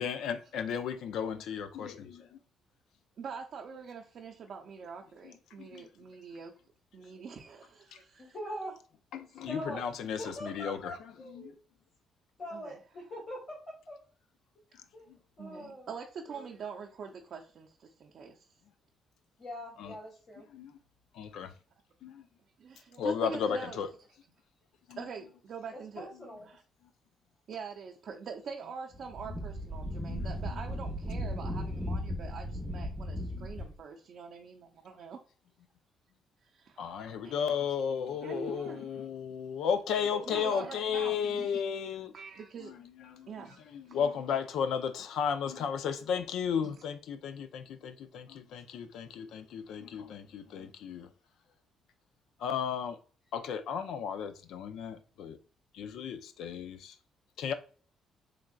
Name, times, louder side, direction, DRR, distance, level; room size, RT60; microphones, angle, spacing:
voice 1, 0.0-2.4 5.2-5.9 7.9-8.0 9.1-10.9 11.3-11.5 14.7-15.2 19.8-19.9 20.5-20.8 21.1-21.5 22.0-22.3 23.0-23.9 24.9-25.0 29.3-29.4 30.0-30.6 33.3-33.5 36.8-42.1 42.6-43.5 43.7-51.1 52.4-53.0 53.3-55.4 55.7-57.0 57.4-57.5, left 7 dB, 80° left, 0.4 m, -34 dB
voice 2, 3.2-6.5 6.9-8.4 12.5-12.8 15.4-18.4 22.6-23.8 25.0-26.1 26.5-26.6 27.5-35.2 36.4-37.0 37.2-37.4 38.2-38.9 40.3-41.5 42.1-42.7 43.3-43.6 43.9-44.0 46.6-46.7, right 5 dB, 60° right, 0.5 m, -44 dB
voice 3, 8.2-8.7 9.5-11.5 12.4-14.0 14.9-15.1 15.4-16.5 19.4-20.5 25.7-26.5 40.1-40.7, equal, 55° left, 1.7 m, -43 dB
Wind, 28.9-33.8, equal, ahead, 0.9 m, -36 dB
3.7 x 3.3 x 2.3 m
cardioid pair, 90°, 0 cm